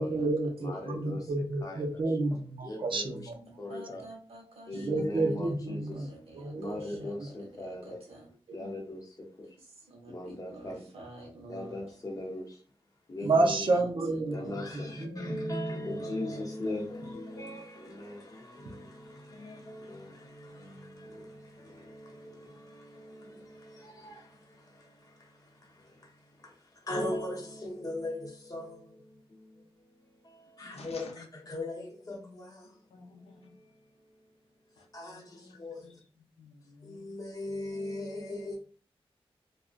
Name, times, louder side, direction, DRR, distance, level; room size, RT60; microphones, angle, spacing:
voice 1, 0.0-3.6 4.7-6.1 6.3-7.3 8.5-8.6 13.2-16.0, right 2 dB, 55° right, 3 dB, 0.5 m, -30 dB
voice 2, 0.6-1.2 1.6-1.9 2.6-3.2 3.6-4.0 4.7-5.8 6.6-8.0 8.5-9.0 10.1-10.8 11.5-12.4 13.1-13.7 14.3-19.0 19.4-21.3 21.8-22.3 23.0-23.3 24.0-24.1 26.9-28.8 30.6-31.1 31.5-32.5 34.9-35.2 35.6-35.8 36.9-38.6, left 1 dB, 35° left, 0 dB, 0.7 m, -38 dB
voice 3, 3.6-8.3 9.6-11.9 13.2-13.4 13.7-14.8, right 2 dB, 75° right, 0 dB, 0.9 m, -50 dB
voice 4, 15.0-16.2 19.3-19.6 30.6-33.6 34.8-37.2, left 3 dB, 90° left, 2 dB, 0.5 m, -51 dB
2.4 x 2.1 x 2.4 m, 0.40 s
wide cardioid pair, 125°, 10 cm